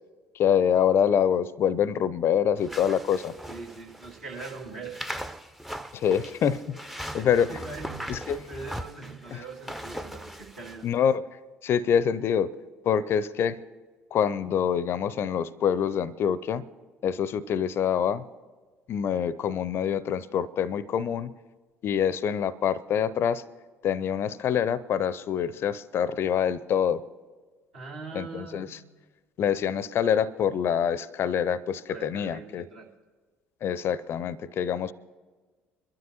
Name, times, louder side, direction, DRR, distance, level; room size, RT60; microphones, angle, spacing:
voice 1, 0.4-3.3 5.9-6.8 7.1-7.5 8.1-8.4 9.3-9.4 10.8-11.2 11.6-12.5 12.9-13.6 14.1-16.6 17.0-18.2 18.9-21.3 21.8-23.4 23.8-27.0 28.1-28.8 29.4-32.7 33.6-34.9, left 8 dB, 45° left, 20 dB, 0.5 m, -25 dB
sound 1, 2.6-10.8, equal, 5° right, 0.5 m, -40 dB
voice 2, 3.5-5.0 5.7-5.8 7.0-10.9 27.7-28.8 31.9-32.9, right 4 dB, 70° right, -5 dB, 2.6 m, -42 dB
27.0 x 12.5 x 2.9 m, 1.4 s
figure-of-eight pair, 55°, 6 cm